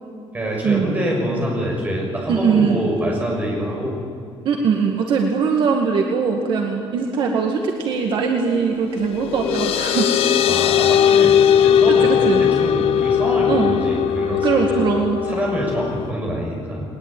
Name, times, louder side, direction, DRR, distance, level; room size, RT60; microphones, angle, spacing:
voice 1, 0.3-4.0 10.5-14.9 15.2-16.8, equal, 15° right, -2 dB, 6.7 m, -25 dB
voice 2, 2.3-2.8 4.5-10.2 11.2-11.3 11.9-12.4 13.5-13.8 14.4-15.2, right 5 dB, 55° right, 2 dB, 2.0 m, -21 dB
sound 1, 9.0-16.1, left 9 dB, 80° left, 0.8 m, -18 dB
21.0 x 20.5 x 9.2 m, 2.4 s
cardioid pair, 180°, 10 cm